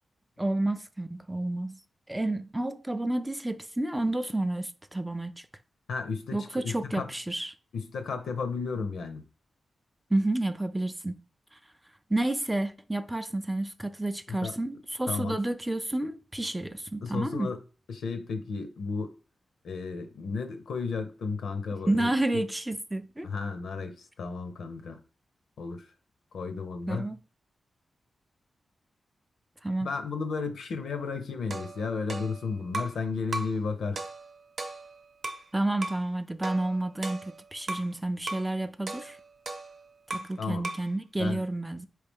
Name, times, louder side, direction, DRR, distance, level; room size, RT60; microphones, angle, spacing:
voice 1, 0.4-1.8 2.1-5.5 6.3-7.5 10.1-11.2 11.5-11.6 12.1-17.5 21.9-23.3 26.9-27.2 29.6-29.9 35.5-39.2 40.1-41.9, right 1 dB, 10° right, 0.4 m, -30 dB
voice 2, 5.9-7.1 7.7-9.2 14.3-14.6 15.1-15.4 17.0-17.6 17.9-19.1 19.6-22.1 23.2-25.0 25.6-25.9 26.3-27.1 29.8-34.0 40.4-40.6 41.2-41.4, left 4 dB, 90° left, 0.7 m, -33 dB
sound 1, 31.5-33.0 33.3-33.6 34.0-35.5 35.8-36.1 36.4-37.9 38.3-38.5 38.9-40.4 40.6-40.9, right 2 dB, 50° right, 0.7 m, -37 dB
4.5 x 3.2 x 3.5 m
wide cardioid pair, 100°, 0 cm